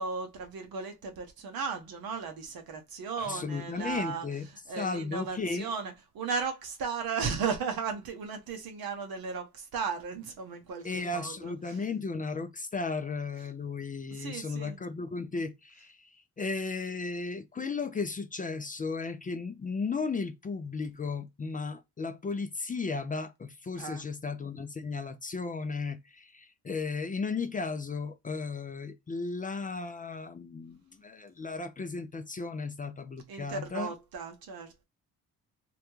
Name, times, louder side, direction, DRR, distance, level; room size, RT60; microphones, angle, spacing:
voice 1, 0.0-4.3 4.7-11.8 14.1-14.8 23.8-24.1 33.3-34.8, right 5 dB, 60° right, 0.7 m, -36 dB
voice 2, 3.2-4.5 4.8-5.7 10.8-16.1 16.4-33.9, left 4 dB, 20° left, 0.3 m, -35 dB
2.2 x 2.2 x 3.0 m
hypercardioid pair, 45°, 41 cm